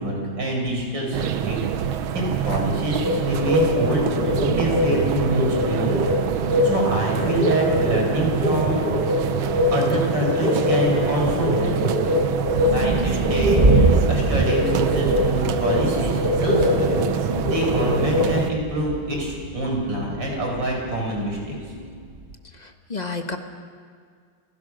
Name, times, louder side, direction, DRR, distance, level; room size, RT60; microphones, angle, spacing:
voice 1, 0.0-1.6 2.1-6.1 6.4-8.8 9.7-11.7 12.5-21.6, right 1 dB, 60° right, 0 dB, 5.5 m, -26 dB
sound 1, 1.1-18.5, right 9 dB, 85° right, 1.7 m, -27 dB
sound 2, 3.0-18.4, left 1 dB, 55° left, 6.3 m, -24 dB
sound 3, 12.7-22.3, right 3 dB, 35° right, 0.5 m, -25 dB
voice 2, 21.7-22.1 22.5-23.4, left 3 dB, 25° left, 5 dB, 1.2 m, -33 dB
27.5 x 16.0 x 6.2 m, 2.1 s
omnidirectional pair, 2.2 m